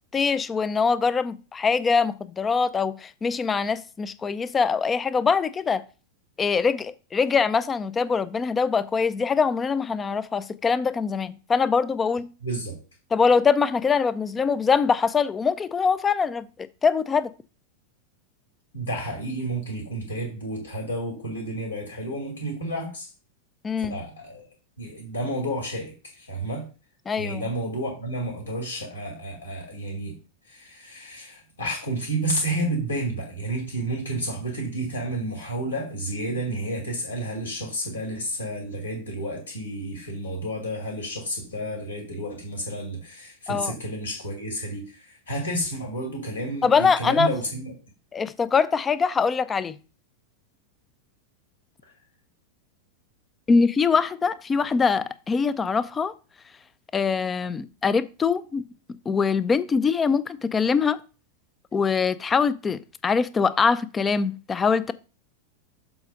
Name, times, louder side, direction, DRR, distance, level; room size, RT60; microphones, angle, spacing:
voice 1, 0.1-5.8 6.4-12.3 13.1-16.5 16.8-17.3 23.6-24.0 27.1-27.4 43.5-43.7 46.6-47.3 48.1-49.8 53.5-56.1 56.9-58.6 59.1-61.0 61.7-64.9, left 5 dB, 20° left, 0.5 m, -23 dB
voice 2, 12.4-12.8 18.7-23.1 23.8-24.5 24.8-26.6 27.2-30.1 30.5-47.7, right 1 dB, 75° left, 2.6 m, -31 dB
7.0 x 4.1 x 5.2 m
figure-of-eight pair, 90°, 0 cm